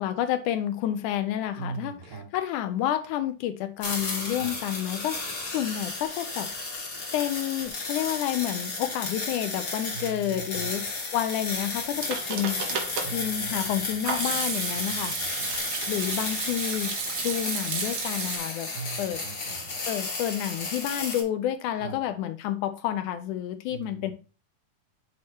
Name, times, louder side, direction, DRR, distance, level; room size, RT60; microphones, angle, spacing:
voice 1, 0.0-1.9 2.3-5.2 5.5-6.5 7.1-10.9 11.1-12.7 13.1-15.2 15.9-16.9 17.2-18.7 19.0-19.2 19.9-24.1, left 11 dB, 80° left, 2.0 m, -29 dB
voice 2, 1.6-2.3 4.3-4.5 9.9-10.7 13.0-14.0 14.7-15.5 18.7-19.7 21.8-22.0 23.7-24.1, right 5 dB, 85° right, 3.8 m, -40 dB
sound 1, 3.8-21.2, left 3 dB, 40° left, 1.7 m, -33 dB
Hands / Sink (filling or washing), 11.7-18.4, right 5 dB, 65° right, 1.2 m, -33 dB
8.4 x 2.9 x 4.4 m
omnidirectional pair, 3.8 m